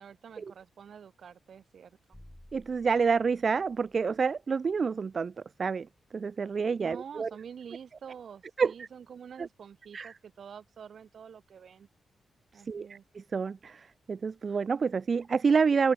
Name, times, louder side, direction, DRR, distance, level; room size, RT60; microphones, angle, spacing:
voice 1, 0.0-2.0 6.8-11.9 12.5-13.0, right 7 dB, 65° right, 5.9 m, -47 dB
sound 1, 2.1-4.6, left 1 dB, 5° left, 2.7 m, -56 dB
voice 2, 2.5-5.3 5.6-5.9 6.1-7.3 8.6-8.9 9.4-9.5 9.9-10.1 12.7-15.9, right 5 dB, 45° right, 0.3 m, -28 dB
open air
wide cardioid pair, 115°, 0 cm